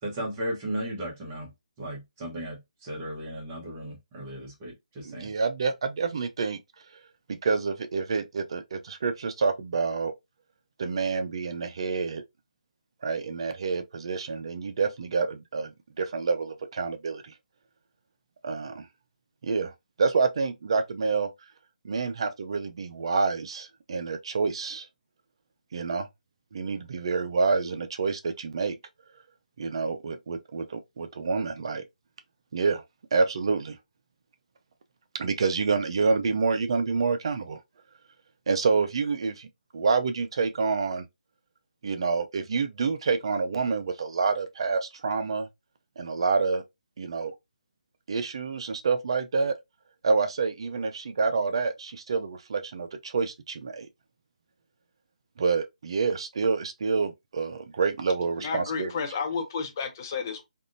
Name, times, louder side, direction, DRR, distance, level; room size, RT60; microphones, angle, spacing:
voice 1, 0.0-1.5 1.8-5.3, right 1 dB, 20° right, 1.0 m, -35 dB
voice 2, 5.0-6.6 7.3-10.1 10.8-12.2 13.0-17.3 18.4-18.9 19.4-19.7 20.0-21.3 21.8-24.9 25.7-26.1 26.5-28.8 29.6-31.8 32.5-32.8 33.1-33.8 35.2-37.6 38.5-39.5 39.7-41.0 41.8-45.5 46.0-46.6 47.0-47.3 48.1-49.5 50.0-53.9 55.4-58.9, right 4 dB, 40° right, 0.4 m, -27 dB
voice 3, 58.4-60.4, left 5 dB, 25° left, 0.6 m, -31 dB
3.5 x 2.4 x 2.6 m
hypercardioid pair, 170°, 4 cm